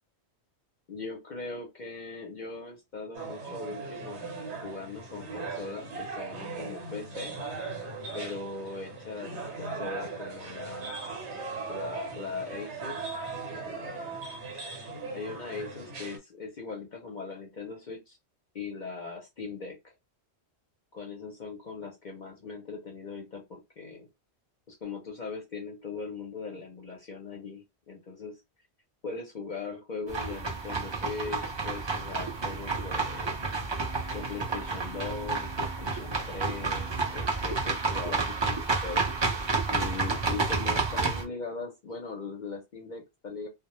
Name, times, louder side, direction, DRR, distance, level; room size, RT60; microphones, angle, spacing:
voice 1, 0.9-4.3 4.6-7.4 8.1-11.3 11.7-13.2 13.7-14.3 15.1-18.2 18.5-19.9 20.9-24.1 24.7-28.4 29.0-33.4 34.1-39.3 39.7-43.5, left 4 dB, 55° left, 2 dB, 0.6 m, -40 dB
sound 1, 3.1-16.2, right 4 dB, 85° right, 1.1 m, -38 dB
sound 2, 30.1-41.2, right 3 dB, 40° right, 0.4 m, -30 dB
2.1 x 2.1 x 2.9 m, 0.22 s
omnidirectional pair, 1.1 m